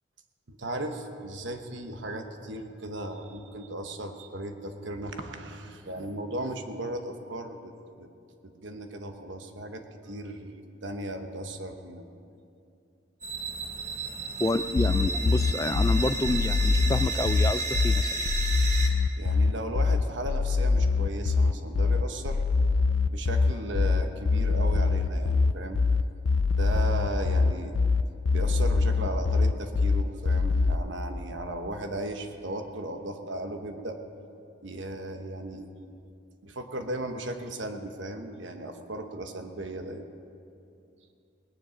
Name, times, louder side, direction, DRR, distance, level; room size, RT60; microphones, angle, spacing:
voice 1, 0.5-7.7 8.0-8.1 8.4-12.1 19.2-22.4 23.1-25.8 26.6-27.8 28.3-34.0 34.6-35.7 36.4-40.1, right 1 dB, 70° right, 6 dB, 1.1 m, -36 dB
sound 1, 13.2-18.9, right 4 dB, 35° right, 1.4 m, -33 dB
voice 2, 14.4-18.1, left 2 dB, 15° left, 13 dB, 0.3 m, -28 dB
sound 2, 14.8-30.8, left 4 dB, 85° left, 0.5 m, -24 dB
19.0 x 10.0 x 5.2 m, 2.5 s
head